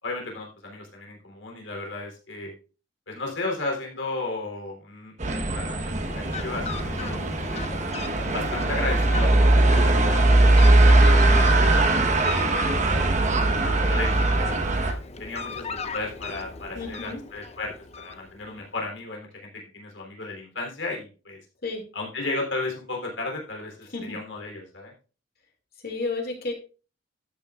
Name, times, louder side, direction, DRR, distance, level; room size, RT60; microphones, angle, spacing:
voice 1, 0.0-2.5 3.1-7.2 7.5-7.7 8.3-14.6 15.2-21.4 21.9-24.9, left 2 dB, 85° left, 1 dB, 3.4 m, -35 dB
sound 1, 5.2-14.9, right 2 dB, 40° right, 1.1 m, -20 dB
Fowl, 5.6-18.6, left 4 dB, 35° left, 0.7 m, -38 dB
voice 2, 16.7-17.2 21.6-21.8 23.9-24.2 25.8-26.5, left 3 dB, 55° left, 3 dB, 2.2 m, -32 dB
12.0 x 8.5 x 2.4 m, 0.34 s
head